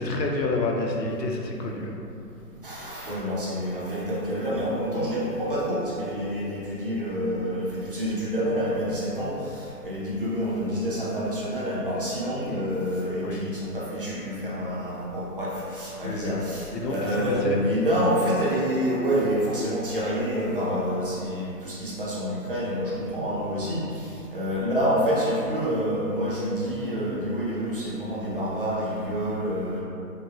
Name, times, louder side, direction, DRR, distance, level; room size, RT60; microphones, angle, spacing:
voice 1, 0.0-1.9 13.2-13.5 16.0-16.4 16.7-17.6, left 2 dB, 85° left, 0 dB, 0.9 m, -29 dB
voice 2, 2.6-29.8, equal, 35° right, -7 dB, 0.7 m, -27 dB
6.3 x 2.3 x 2.8 m, 2.8 s
hypercardioid pair, 165°, 49 cm